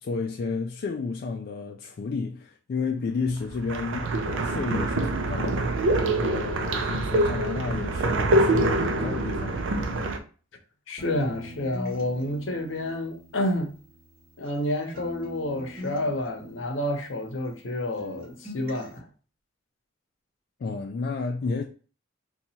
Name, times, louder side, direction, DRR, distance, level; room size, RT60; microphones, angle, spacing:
voice 1, 0.0-10.1 20.6-21.6, left 4 dB, 55° left, 0.3 m, -32 dB
sound 1, 3.3-10.2, right 2 dB, 75° right, 0.5 m, -25 dB
voice 2, 10.9-13.8 14.4-19.1, left 1 dB, 80° left, 0.7 m, -29 dB
sound 2, 11.0-14.6 14.9-17.7 18.0-19.0, equal, 50° right, 1.5 m, -43 dB
2.8 x 2.3 x 4.1 m
head